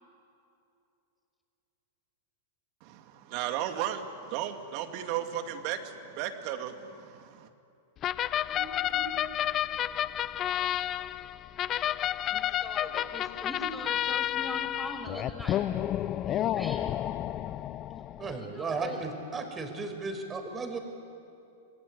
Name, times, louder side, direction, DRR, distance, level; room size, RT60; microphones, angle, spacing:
voice 1, 2.8-7.5, right 10 dB, 50° right, 7 dB, 2.4 m, -35 dB
sound 1, 8.0-18.4, left 12 dB, 35° left, 0.7 m, -31 dB
voice 2, 8.4-9.1 12.3-15.6 16.6-17.0 18.4-19.0, equal, ahead, 2 dB, 5.7 m, -42 dB
voice 3, 18.2-20.8, right 4 dB, 20° right, 6 dB, 4.9 m, -35 dB
27.0 x 20.5 x 9.6 m, 2.7 s
hypercardioid pair, 105°, 0 cm